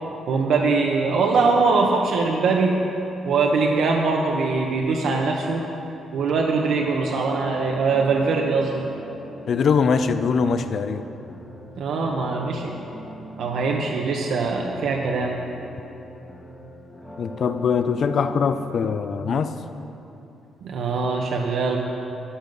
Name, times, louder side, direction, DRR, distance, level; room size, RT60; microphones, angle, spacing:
voice 1, 0.3-2.8 3.2-5.6 6.1-8.8 11.8-12.8 13.4-15.4 20.6-21.8, right 4 dB, 70° right, 0 dB, 1.0 m, -22 dB
sound 1, 6.9-18.9, equal, 10° left, 1.3 m, -41 dB
voice 2, 9.5-11.0 17.2-19.5, left 6 dB, 50° left, 10 dB, 0.5 m, -22 dB
13.0 x 11.0 x 5.3 m, 2.9 s
cardioid pair, 155°, 0 cm